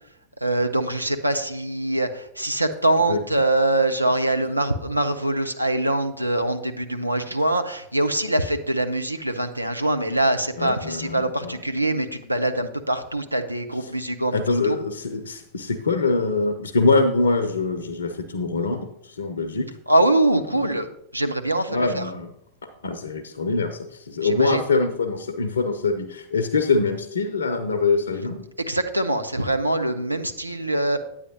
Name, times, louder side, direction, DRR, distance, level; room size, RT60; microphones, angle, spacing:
voice 1, 0.4-14.3 14.6-14.8 19.9-20.9 21.1-22.1 24.2-24.6 28.6-31.0, right 1 dB, 85° right, 7 dB, 0.7 m, -23 dB
voice 2, 10.6-11.6 14.3-19.7 20.5-20.8 21.7-22.3 22.8-28.4, left 3 dB, 70° left, 8 dB, 0.7 m, -24 dB
9.6 x 8.5 x 3.0 m, 0.74 s
figure-of-eight pair, 90°, 0 cm